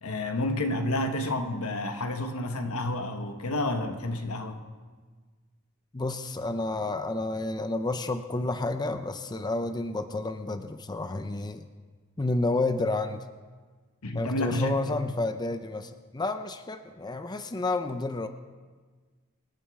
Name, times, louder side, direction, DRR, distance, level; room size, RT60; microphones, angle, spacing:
voice 1, 0.0-4.6 14.0-15.0, left 1 dB, 80° left, 1.2 m, -30 dB
voice 2, 5.9-11.6 12.2-13.2 14.2-18.3, left 2 dB, 20° left, 0.5 m, -30 dB
26.0 x 9.2 x 3.6 m
head